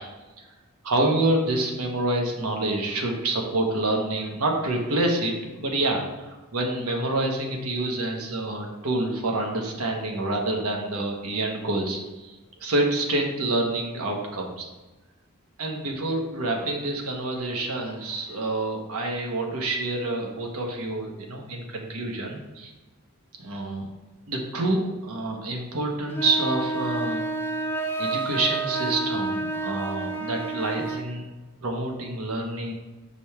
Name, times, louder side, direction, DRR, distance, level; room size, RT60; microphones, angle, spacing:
voice 1, 0.8-12.3 12.6-14.7 15.6-22.7 23.4-23.9 24.3-27.2 28.0-31.2 31.6-32.7, right 2 dB, 85° right, 2 dB, 1.1 m, -27 dB
sound 1, 26.1-31.1, right 3 dB, 10° left, 0.5 m, -29 dB
5.3 x 3.3 x 5.6 m, 1.2 s
head